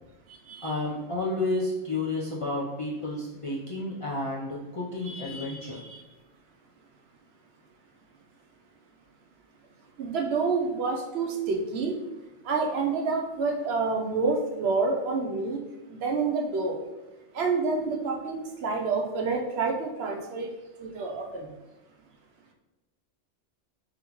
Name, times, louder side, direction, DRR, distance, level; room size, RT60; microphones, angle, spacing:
voice 1, 0.6-5.8, left 2 dB, 45° left, -5 dB, 0.4 m, -31 dB
voice 2, 5.0-6.0 10.0-12.0 12.4-15.6 15.9-16.8 17.3-20.5 20.8-21.5, right 4 dB, 65° right, 1 dB, 0.8 m, -28 dB
3.8 x 3.5 x 3.0 m, 1.1 s
omnidirectional pair, 1.2 m